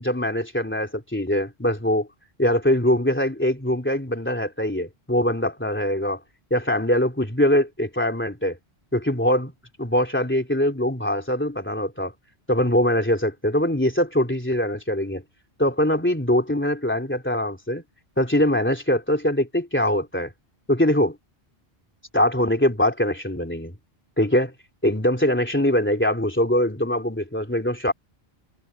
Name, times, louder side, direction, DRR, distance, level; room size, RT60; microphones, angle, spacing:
voice 1, 0.0-2.1 2.4-6.2 6.5-8.6 8.9-9.5 9.8-12.1 12.5-15.2 15.6-17.8 18.2-20.3 20.7-21.2 22.1-23.7 24.2-24.5 24.8-27.9, left 1 dB, 10° left, 3.4 m, -22 dB
omnidirectional pair, 1.1 m